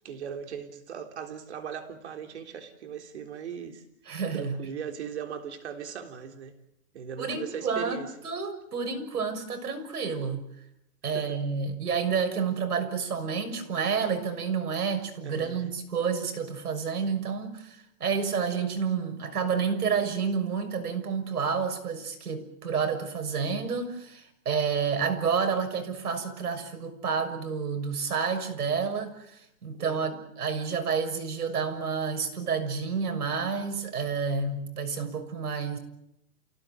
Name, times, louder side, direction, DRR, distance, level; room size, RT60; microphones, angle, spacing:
voice 1, 0.0-3.8 4.3-6.5 6.9-8.1 11.0-11.4 15.2-15.7 29.7-30.2, right 8 dB, 45° right, 5 dB, 3.7 m, -39 dB
voice 2, 4.1-4.6 7.2-8.0 8.2-10.4 11.0-35.8, right 6 dB, 85° right, 7 dB, 6.7 m, -29 dB
30.0 x 17.5 x 9.2 m, 0.80 s
hypercardioid pair, 175°, 45 cm